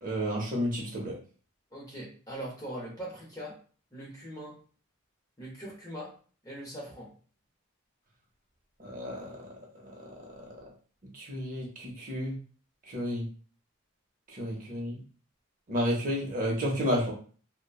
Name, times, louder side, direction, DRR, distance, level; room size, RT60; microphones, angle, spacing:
voice 1, 0.0-1.1 8.8-9.4 9.8-9.9 11.1-12.4 12.9-13.3 14.3-15.0 15.7-17.1, equal, 40° right, -2 dB, 0.7 m, -31 dB
voice 2, 1.7-3.6 3.9-4.6 5.4-6.1 6.4-7.1, right 1 dB, 15° left, -4 dB, 0.8 m, -41 dB
2.8 x 2.1 x 2.3 m, 0.41 s
head